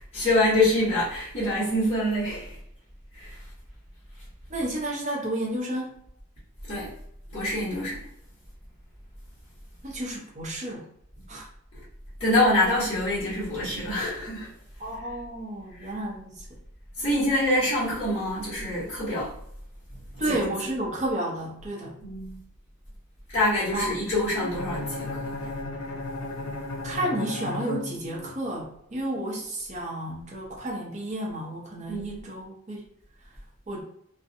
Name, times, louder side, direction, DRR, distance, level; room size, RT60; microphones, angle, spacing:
voice 1, 0.1-2.6 3.1-3.4 6.7-6.9 7.3-8.0 12.2-14.5 15.8-15.9 17.0-19.3 20.1-20.5 22.0-22.4 23.3-25.2 31.9-32.2, left 1 dB, 30° left, -13 dB, 1.2 m, -25 dB
voice 2, 4.5-6.0 9.8-10.9 11.3-11.4 14.8-16.4 20.2-21.9 23.7-23.8 26.8-32.8 33.7-33.8, right 1 dB, 35° right, -3 dB, 0.7 m, -31 dB
Bowed string instrument, 24.4-28.5, left 2 dB, 90° left, 0.5 m, -34 dB
2.5 x 2.1 x 2.6 m, 0.71 s
head